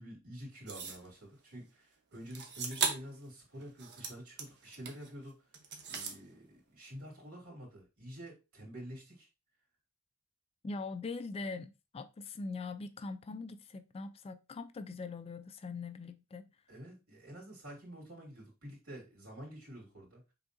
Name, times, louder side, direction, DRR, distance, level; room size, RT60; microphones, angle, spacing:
voice 1, 0.0-5.4 5.9-9.3 16.7-20.2, equal, 90° right, 2.9 m, -48 dB
sound 1, 0.7-1.1 2.3-3.2 3.6-5.1 5.5-6.2, right 5 dB, 50° right, 0.9 m, -37 dB
voice 2, 10.6-16.5, left 3 dB, 25° left, 0.3 m, -42 dB
5.6 x 3.6 x 2.6 m
head